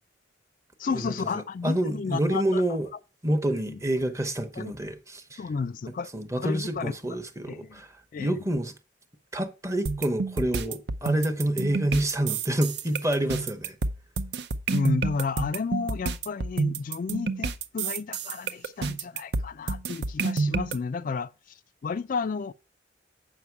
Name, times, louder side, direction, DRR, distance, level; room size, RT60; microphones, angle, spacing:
voice 1, 0.8-2.6 3.5-3.8 4.6-4.7 5.4-6.1 6.4-6.9 7.5-7.8 8.1-8.4 14.7-22.5, left 5 dB, 45° left, 0.3 m, -32 dB
voice 2, 1.6-2.9 3.2-5.4 6.1-8.7 9.3-13.8, right 1 dB, 15° right, 0.9 m, -28 dB
sound 1, 9.9-20.8, right 4 dB, 60° right, 0.6 m, -29 dB
8.4 x 5.8 x 4.5 m
head